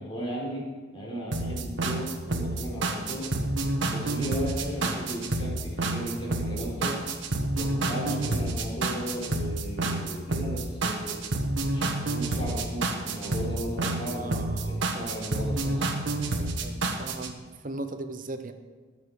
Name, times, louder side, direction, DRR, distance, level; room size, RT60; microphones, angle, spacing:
voice 1, 0.0-3.3 3.9-7.0 7.5-11.2 11.7-16.0, right 1 dB, 25° left, -4 dB, 3.9 m, -36 dB
sound 1, 1.3-17.3, right 2 dB, 60° right, 1.4 m, -29 dB
voice 2, 7.8-8.6 14.1-15.1 16.6-18.5, right 2 dB, 40° right, 8 dB, 0.8 m, -37 dB
20.5 x 7.2 x 4.8 m, 1.4 s
head